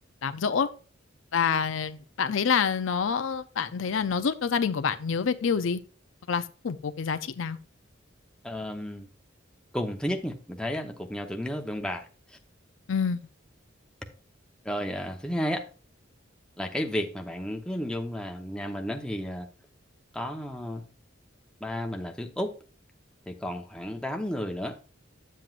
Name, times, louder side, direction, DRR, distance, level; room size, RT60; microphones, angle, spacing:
voice 1, 0.2-0.7 1.3-5.8 6.3-7.6 12.9-13.2, left 6 dB, 70° left, 0.5 m, -27 dB
voice 2, 8.4-9.1 9.7-12.4 14.6-15.7 16.6-19.5 20.1-20.8 21.6-22.5 23.3-24.8, equal, 5° left, 0.8 m, -32 dB
10.5 x 7.6 x 2.4 m
head